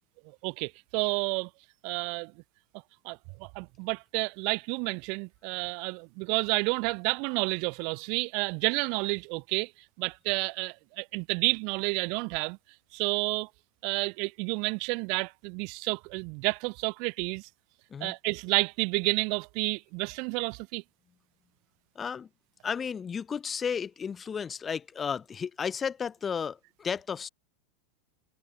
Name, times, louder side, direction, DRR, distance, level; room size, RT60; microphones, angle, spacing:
voice 1, 0.4-1.5 1.8-2.3 3.0-9.7 10.0-12.6 12.9-13.5 13.8-17.5 18.0-20.8, right 34 dB, 40° right, 1.5 m, -30 dB
voice 2, 21.9-22.3 22.6-27.3, left 6 dB, 15° left, 1.8 m, -33 dB
supercardioid pair, 170°, 0 cm